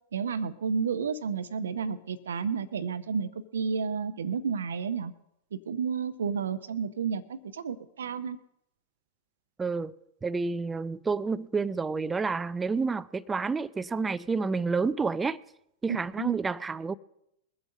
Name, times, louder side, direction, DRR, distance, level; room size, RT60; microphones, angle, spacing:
voice 1, 0.1-5.1 5.5-8.4 16.2-16.4, right 6 dB, 65° right, 0.6 m, -31 dB
voice 2, 9.6-9.9 10.2-15.4 15.8-17.0, right 4 dB, 15° right, 0.4 m, -29 dB
21.5 x 7.9 x 5.3 m
figure-of-eight pair, 95°, 0 cm